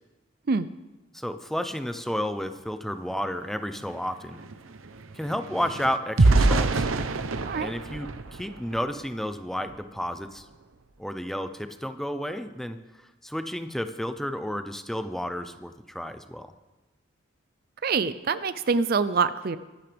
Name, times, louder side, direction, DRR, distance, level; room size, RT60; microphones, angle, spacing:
voice 1, 1.1-4.4 5.1-6.9 7.5-10.4 11.0-12.8 13.2-16.5, equal, ahead, 8 dB, 0.6 m, -32 dB
sound 1, 3.2-3.3 3.6-9.1 9.6-9.8 10.2-10.4, right 3 dB, 80° right, 0.8 m, -26 dB
voice 2, 17.8-19.6, right 5 dB, 45° right, 14 dB, 0.4 m, -25 dB
23.5 x 11.5 x 3.5 m, 1.1 s
head